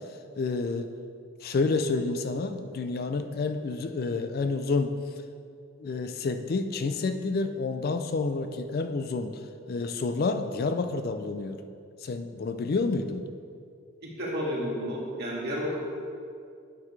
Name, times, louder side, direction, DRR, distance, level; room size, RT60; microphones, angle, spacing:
voice 1, 0.4-0.9 1.4-4.9 5.8-9.4 9.7-11.6 12.0-13.2, left 3 dB, 45° left, 8 dB, 0.4 m, -29 dB
voice 2, 14.0-15.8, equal, 50° right, -5 dB, 1.9 m, -31 dB
9.6 x 6.8 x 3.2 m, 2.4 s
head